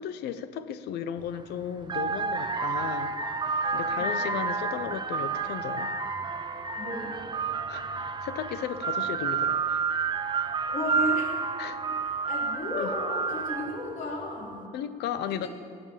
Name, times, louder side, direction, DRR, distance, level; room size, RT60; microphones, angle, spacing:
voice 1, 0.0-3.2 3.7-5.9 7.7-9.8 11.6-11.8 12.8-12.9 14.7-15.5, left 9 dB, 75° left, 12 dB, 0.8 m, -35 dB
sound 1, 1.2-1.4 1.8-13.9, right 5 dB, 25° right, 0.7 m, -30 dB
voice 2, 6.8-7.2 10.6-11.3 11.7-14.6 15.3-15.5, left 1 dB, 50° left, -3 dB, 4.2 m, -34 dB
18.0 x 7.0 x 7.4 m, 2.4 s
cardioid pair, 110°, 17 cm